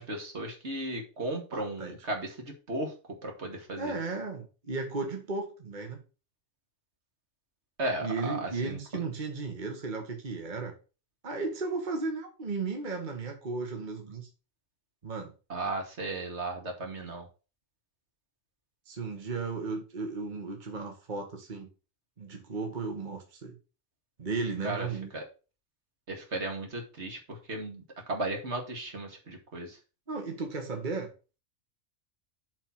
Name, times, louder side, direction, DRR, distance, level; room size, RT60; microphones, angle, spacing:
voice 1, 0.0-4.0 7.8-8.8 15.5-17.3 24.6-24.9 25.1-25.2 26.1-29.8, right 2 dB, 60° right, 2.5 m, -35 dB
voice 2, 1.5-2.0 3.8-6.0 8.0-10.7 11.2-14.3 15.0-15.3 18.9-21.7 22.2-23.6 24.2-25.1 30.1-31.1, right 3 dB, 40° right, 1.6 m, -35 dB
7.3 x 4.5 x 5.8 m
omnidirectional pair, 1.3 m